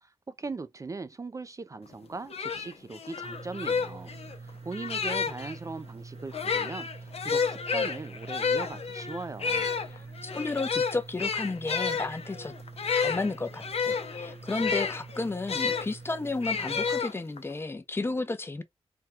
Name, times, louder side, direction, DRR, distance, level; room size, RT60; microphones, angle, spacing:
voice 1, 0.0-4.1 4.4-9.7, right 3 dB, 30° right, 0.3 m, -39 dB
sound 1, 1.9-2.0 2.3-5.6 6.3-15.9 16.4-17.5, left 5 dB, 75° left, 0.7 m, -30 dB
sound 2, 3.2-17.0, right 4 dB, 85° right, 1.0 m, -46 dB
voice 2, 9.9-12.5 12.9-18.6, left 3 dB, 20° left, 0.5 m, -33 dB
3.5 x 2.2 x 4.2 m
wide cardioid pair, 135°, 10 cm